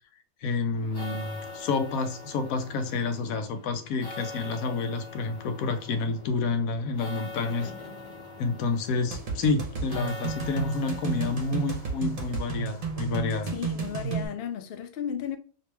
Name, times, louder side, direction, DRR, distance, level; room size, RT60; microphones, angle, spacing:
voice 1, 0.4-7.7 8.4-13.5, left 4 dB, 80° left, 1.1 m, -29 dB
sound 1, 0.7-14.3, left 2 dB, 35° left, 1.3 m, -44 dB
sound 2, 9.1-14.3, right 6 dB, 45° right, 1.0 m, -32 dB
voice 2, 13.5-15.4, left 8 dB, 60° left, 0.6 m, -34 dB
3.0 x 2.9 x 3.2 m
omnidirectional pair, 1.5 m